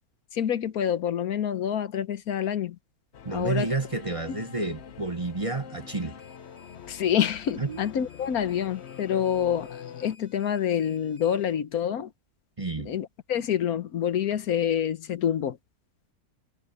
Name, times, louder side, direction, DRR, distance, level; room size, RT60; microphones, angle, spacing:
voice 1, 0.3-2.8 3.3-3.7 6.9-12.1 12.8-15.6, left 9 dB, 75° left, 1.4 m, -27 dB
Singing / Musical instrument, 3.1-10.2, left 8 dB, 50° left, 1.0 m, -44 dB
voice 2, 3.2-6.2 7.6-7.8 12.6-12.9, right 3 dB, 25° right, 1.0 m, -30 dB
sound 1, 6.2-11.5, left 3 dB, 70° right, 8.6 m, -58 dB
omnidirectional pair, 1.6 m